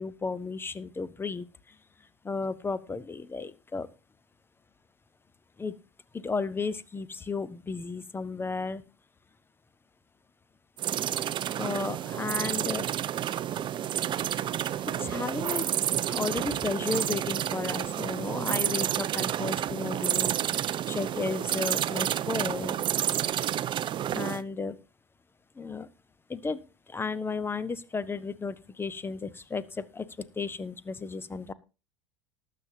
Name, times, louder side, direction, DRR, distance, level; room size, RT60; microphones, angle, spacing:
voice 1, 0.0-1.5 2.2-3.9 5.6-5.7 6.2-8.8 11.6-12.9 15.0-15.7 16.1-22.9 24.1-24.8 25.6-25.9 26.3-26.6 26.9-30.1 30.4-31.5, left 4 dB, 15° left, 16 dB, 0.9 m, -34 dB
sound 1, 10.8-24.4, right 10 dB, 35° right, 0.6 m, -30 dB
19.0 x 7.6 x 2.7 m, 0.31 s
figure-of-eight pair, 75°, 14 cm